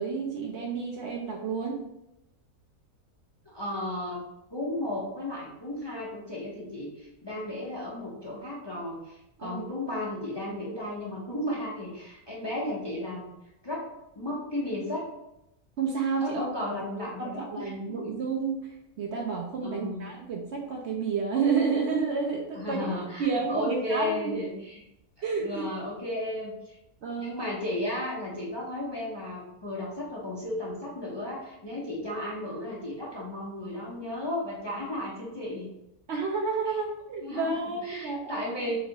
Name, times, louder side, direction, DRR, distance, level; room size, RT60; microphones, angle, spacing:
voice 1, 0.0-1.8 9.4-9.7 15.8-16.5 17.2-22.9 23.2-24.4 25.2-25.7 27.0-27.4 36.1-38.7, right 5 dB, 65° right, 0 dB, 0.7 m, -30 dB
voice 2, 3.4-4.2 4.5-13.3 13.6-13.8 14.2-15.0 16.2-18.1 19.6-20.1 22.5-24.8 25.2-26.8 27.2-35.7 37.2-37.5 37.8-38.8, left 1 dB, 30° left, -6 dB, 0.4 m, -34 dB
3.0 x 2.7 x 3.9 m, 0.89 s
omnidirectional pair, 1.6 m